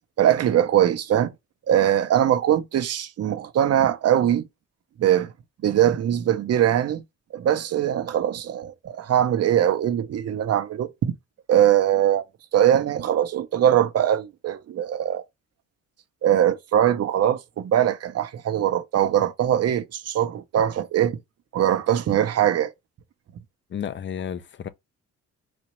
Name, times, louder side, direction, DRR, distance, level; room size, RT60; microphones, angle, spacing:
voice 1, 0.2-1.3 1.7-4.5 5.0-5.3 5.6-7.0 7.3-11.1 11.5-12.2 12.5-15.2 16.2-21.2 21.5-22.7, right 10 dB, 55° right, 0.7 m, -21 dB
voice 2, 23.7-24.7, left 8 dB, 40° left, 0.6 m, -32 dB
4.2 x 2.4 x 3.1 m
cardioid pair, 90°, 30 cm